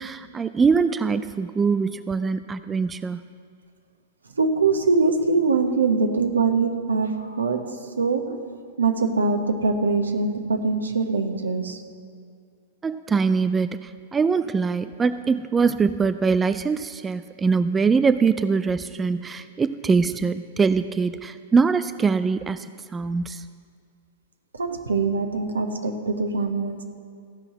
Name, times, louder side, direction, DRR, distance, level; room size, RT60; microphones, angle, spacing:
voice 1, 0.0-3.2 12.8-23.5, right 5 dB, 15° right, 12 dB, 0.4 m, -23 dB
voice 2, 4.4-8.4 8.8-11.8 24.5-26.8, right 4 dB, 80° right, 5 dB, 1.2 m, -23 dB
14.5 x 5.7 x 8.0 m, 2.2 s
figure-of-eight pair, 105°, 0 cm